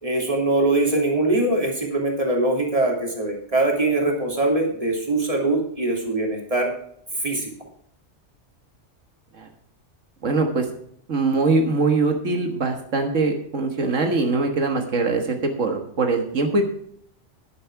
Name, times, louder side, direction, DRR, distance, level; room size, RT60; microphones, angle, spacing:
voice 1, 0.0-6.7 7.2-7.5, right 2 dB, 30° right, 0 dB, 3.0 m, -22 dB
voice 2, 10.2-10.7 11.1-16.6, right 3 dB, 85° right, 4 dB, 1.8 m, -22 dB
10.5 x 10.5 x 4.6 m, 0.66 s
omnidirectional pair, 1.3 m